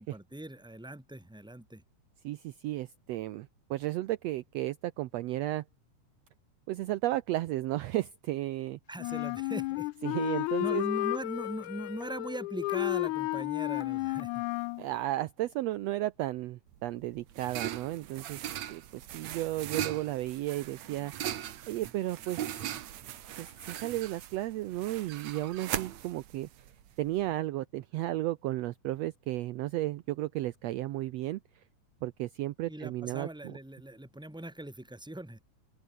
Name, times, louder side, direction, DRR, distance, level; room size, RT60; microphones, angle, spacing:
voice 1, 0.0-1.8 8.9-9.9 10.6-14.5 32.7-35.4, right 1 dB, ahead, 2.6 m, -40 dB
voice 2, 2.2-5.6 6.7-8.8 10.0-10.8 14.8-21.1 21.7-22.6 23.3-26.7 27.0-31.4 32.0-33.6, right 16 dB, 80° right, 1.5 m, -34 dB
Wind instrument woodwind instrument, 9.0-14.8, left 21 dB, 80° left, 1.8 m, -32 dB
sound 1, 16.7-27.3, right 11 dB, 60° right, 2.4 m, -39 dB
open air
omnidirectional pair, 3.8 m